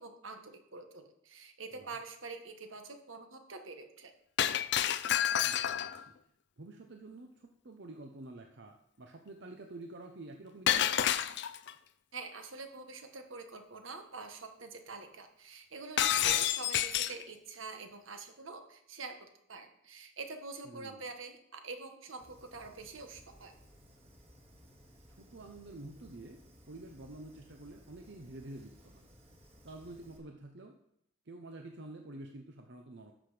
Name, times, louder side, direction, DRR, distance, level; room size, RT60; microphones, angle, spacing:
voice 1, 0.0-4.1 12.1-23.5, right 4 dB, 75° right, 6 dB, 1.4 m, -46 dB
Shatter, 4.4-6.0 10.7-11.7 16.0-17.2, left 10 dB, 60° left, 0.5 m, -29 dB
voice 2, 5.4-6.1 6.6-10.9 20.6-21.0 25.2-26.4 26.7-29.1 29.6-30.7 31.3-33.1, right 2 dB, 60° right, 4 dB, 0.9 m, -49 dB
Fire, 22.2-30.2, equal, 30° right, 2.0 m, -59 dB
12.5 x 6.2 x 5.0 m, 0.74 s
head